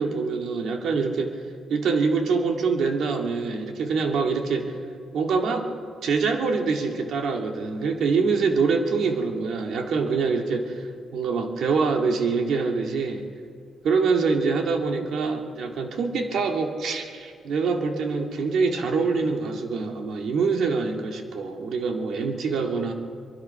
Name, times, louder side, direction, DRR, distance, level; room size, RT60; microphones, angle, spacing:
voice 1, 0.0-1.4 1.7-4.8 5.1-5.7 6.0-13.3 13.8-22.9, right 4 dB, 70° right, 3 dB, 2.1 m, -25 dB
24.0 x 22.5 x 5.8 m, 2.2 s
cardioid pair, 145°, 0 cm